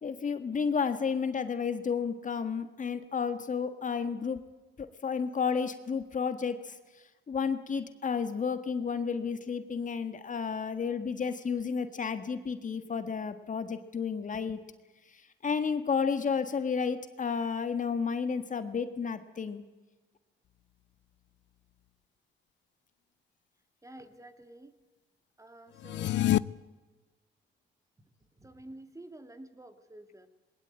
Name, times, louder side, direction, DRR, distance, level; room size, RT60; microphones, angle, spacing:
voice 1, 0.0-4.4 4.8-6.8 7.3-14.6 15.4-19.6, left 6 dB, 40° left, 10 dB, 1.6 m, -32 dB
voice 2, 23.8-24.7 25.4-26.3 28.4-30.3, right 1 dB, 15° right, 9 dB, 2.3 m, -50 dB
sound 1, 25.8-26.4, left 13 dB, 65° left, 0.6 m, -26 dB
21.0 x 19.0 x 8.9 m, 1.2 s
cardioid pair, 90°, 20 cm